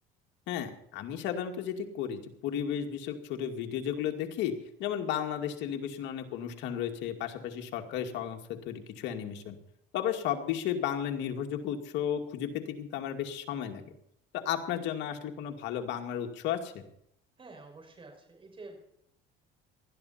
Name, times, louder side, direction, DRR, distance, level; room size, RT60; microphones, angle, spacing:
voice 1, 0.5-4.5 4.8-9.6 9.9-13.9 14.3-16.8, left 9 dB, 75° left, 4 dB, 2.3 m, -34 dB
voice 2, 17.4-18.8, right 3 dB, 30° right, 3 dB, 6.0 m, -49 dB
19.5 x 13.0 x 4.4 m, 0.72 s
cardioid pair, 110°, 19 cm